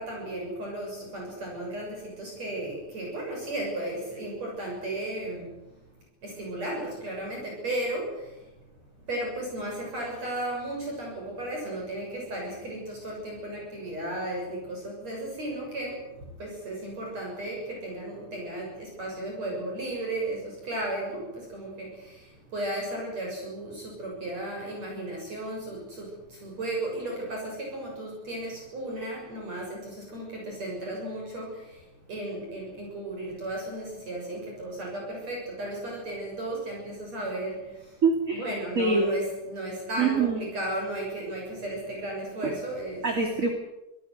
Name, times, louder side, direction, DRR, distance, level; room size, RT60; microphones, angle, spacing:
voice 1, 0.0-5.8 6.2-8.6 9.0-38.0 38.3-43.1, right 1 dB, 45° right, -1 dB, 8.0 m, -35 dB
voice 2, 38.0-38.5 38.8-39.1 40.0-40.4 42.4-42.5 43.0-43.5, right 4 dB, 25° right, 4 dB, 2.5 m, -24 dB
26.0 x 18.5 x 8.0 m, 0.96 s
omnidirectional pair, 4.1 m